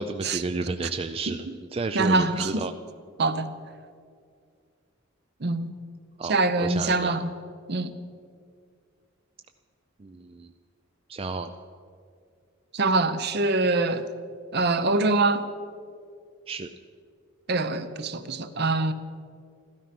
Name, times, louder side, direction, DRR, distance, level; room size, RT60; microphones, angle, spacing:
voice 1, 0.0-2.7 6.2-7.2 10.0-10.5 11.1-11.5 16.5-16.7, right 3 dB, 30° right, 0.4 m, -32 dB
voice 2, 1.9-2.6 3.2-3.5 5.4-5.7 6.3-7.3 7.7-7.9 12.7-14.0 14.5-15.5 17.5-18.9, right 3 dB, 50° right, 0.8 m, -24 dB
14.5 x 12.5 x 5.9 m
head